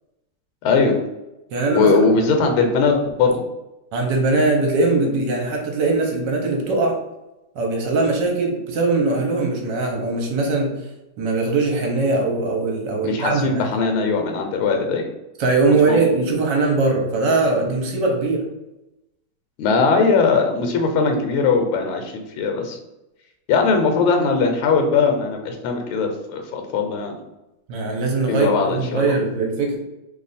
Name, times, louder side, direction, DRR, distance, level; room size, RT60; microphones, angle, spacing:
voice 1, 0.6-0.9 1.7-3.3 13.0-15.1 15.9-16.0 19.6-22.8 23.5-27.1 28.3-29.2, left 4 dB, 85° left, 4 dB, 1.5 m, -19 dB
voice 2, 1.5-1.9 3.9-7.0 7.5-10.7 11.2-13.7 15.4-18.4 27.7-29.8, right 3 dB, 65° right, 1 dB, 1.2 m, -21 dB
3.3 x 2.4 x 4.0 m, 0.95 s
omnidirectional pair, 2.3 m